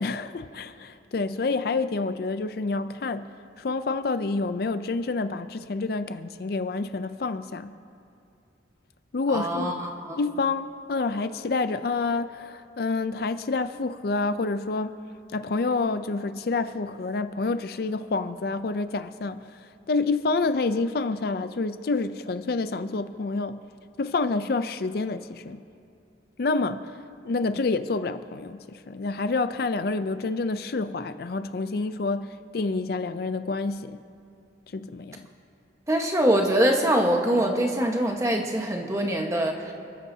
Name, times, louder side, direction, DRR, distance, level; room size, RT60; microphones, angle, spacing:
voice 1, 0.0-3.3 3.6-7.7 9.1-9.7 10.2-15.0 15.3-23.6 24.0-25.6 26.4-27.0 27.2-34.0 34.7-35.3, left 3 dB, 55° left, 0.4 m, -28 dB
voice 2, 9.3-10.2 35.9-39.7, right 1 dB, 15° right, 1.2 m, -24 dB
29.5 x 13.5 x 2.8 m
head